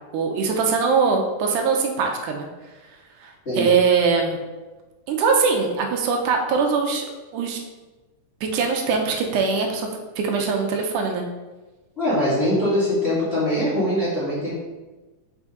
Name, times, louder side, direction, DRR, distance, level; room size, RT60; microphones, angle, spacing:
voice 1, 0.1-2.5 3.2-4.4 5.1-7.1 7.3-7.6 8.4-9.9 10.2-11.3, right 5 dB, 80° right, 2 dB, 2.2 m, -22 dB
voice 2, 12.0-14.6, left 1 dB, 25° left, -11 dB, 1.9 m, -22 dB
6.2 x 5.0 x 3.8 m, 1.2 s
omnidirectional pair, 3.6 m